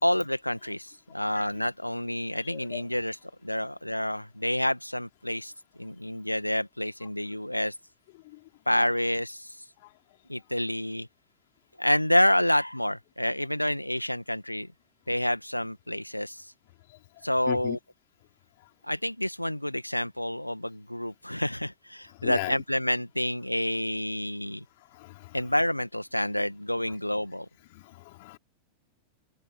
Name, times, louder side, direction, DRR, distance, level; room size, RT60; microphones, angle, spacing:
voice 1, 0.0-3.2 3.4-5.5 5.8-7.8 8.7-9.7 10.3-11.1 11.8-14.7 15.1-16.5 17.2-17.8 18.8-24.6 25.3-27.5, left 1 dB, 90° left, 1.6 m, -28 dB
voice 2, 2.5-2.8 8.3-8.4 9.8-9.9 17.5-17.8 22.2-22.5 24.9-25.4 27.7-28.4, left 22 dB, 50° left, 3.5 m, -37 dB
figure-of-eight pair, 90°, 0 cm